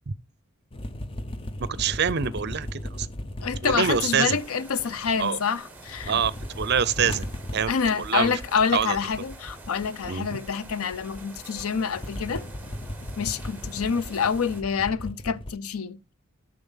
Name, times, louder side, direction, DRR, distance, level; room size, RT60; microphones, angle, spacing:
sound 1, 0.7-5.4 5.7-15.5, left 1 dB, 25° left, 0.6 m, -37 dB
voice 1, 1.7-3.1 3.6-4.4 5.2-5.4 6.1-7.3 7.5-8.3 8.7-9.0 10.1-10.4, right 7 dB, 50° right, 0.6 m, -25 dB
voice 2, 3.4-6.2 7.7-12.5 13.2-16.0, left 6 dB, 80° left, 0.6 m, -27 dB
sound 2, 3.8-14.6, right 2 dB, 10° right, 1.3 m, -47 dB
7.1 x 6.4 x 5.6 m
head